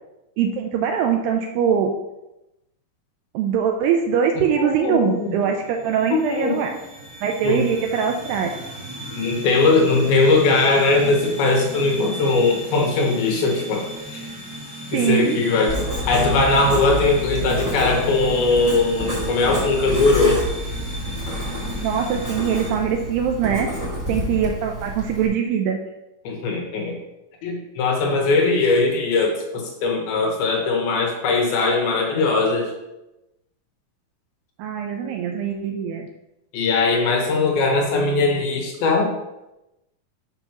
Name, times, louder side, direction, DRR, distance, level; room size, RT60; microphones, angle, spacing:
voice 1, 0.4-1.9 3.3-6.8 7.2-8.5 14.9-15.4 21.8-23.7 24.1-25.8 34.6-36.1, right 7 dB, 85° right, 3 dB, 2.1 m, -22 dB
voice 2, 4.6-5.3 6.1-6.6 7.4-7.6 9.1-14.3 14.9-15.8 16.1-20.4 26.2-27.0 27.4-32.7 36.5-39.1, left 3 dB, 75° left, 1 dB, 2.9 m, -20 dB
sound 1, 4.8-22.7, equal, 10° left, 1.1 m, -35 dB
Writing, 15.7-25.3, right 1 dB, 10° right, 1.2 m, -29 dB
7.7 x 3.0 x 5.8 m, 0.94 s
omnidirectional pair, 4.5 m